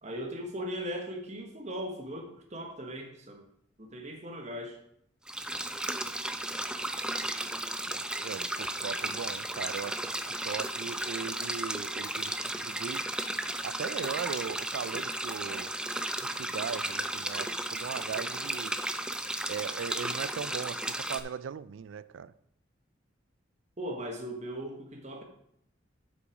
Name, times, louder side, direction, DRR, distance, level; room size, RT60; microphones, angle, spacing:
voice 1, 0.0-3.4 3.8-4.8 9.1-9.2 23.8-25.2, equal, 35° right, 1.3 m, -38 dB
sound 1, 5.3-21.2, right 1 dB, 5° right, 0.3 m, -34 dB
voice 2, 7.8-13.0 13.6-15.7 16.2-18.8 19.5-22.3, right 7 dB, 80° right, 0.4 m, -39 dB
7.8 x 6.0 x 4.8 m
head